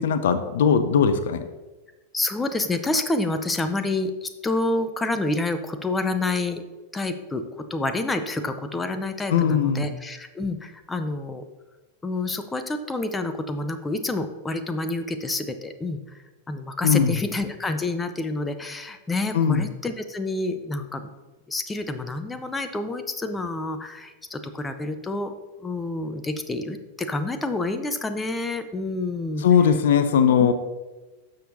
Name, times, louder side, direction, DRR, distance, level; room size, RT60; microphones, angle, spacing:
voice 1, 0.0-1.4 9.3-9.9 16.8-17.2 19.3-19.6 29.4-30.5, left 7 dB, 60° left, 11 dB, 0.5 m, -19 dB
voice 2, 2.1-6.6 6.9-7.4 7.7-11.4 12.0-16.0 16.5-21.1 21.5-25.3 25.6-29.5, left 2 dB, 10° left, 9 dB, 0.6 m, -28 dB
12.5 x 6.5 x 2.7 m, 1.2 s
figure-of-eight pair, 90°, 0 cm